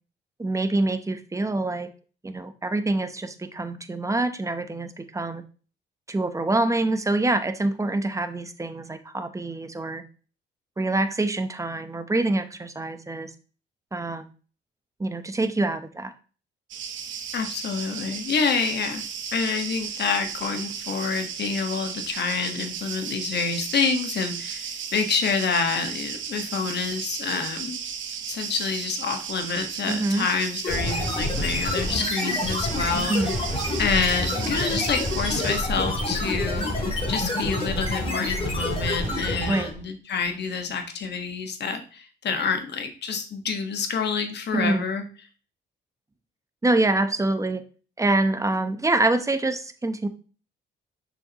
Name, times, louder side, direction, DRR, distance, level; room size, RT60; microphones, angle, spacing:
voice 1, 0.4-1.9 2.2-5.4 6.1-10.0 10.8-13.3 13.9-14.2 15.0-16.1 29.9-30.2 33.1-33.3 39.5-39.7 44.5-44.8 46.6-47.6 48.0-50.1, right 2 dB, 15° right, 9 dB, 0.8 m, -25 dB
sound 1, 16.7-35.6, right 7 dB, 75° right, 1.0 m, -35 dB
voice 2, 17.3-19.0 19.3-27.8 28.3-33.2 33.8-36.7 37.1-45.0, left 5 dB, 60° left, 5 dB, 1.5 m, -27 dB
sound 2, 30.6-39.8, left 1 dB, 30° left, 3.4 m, -27 dB
6.6 x 6.2 x 3.0 m, 0.37 s
cardioid pair, 90°, 20 cm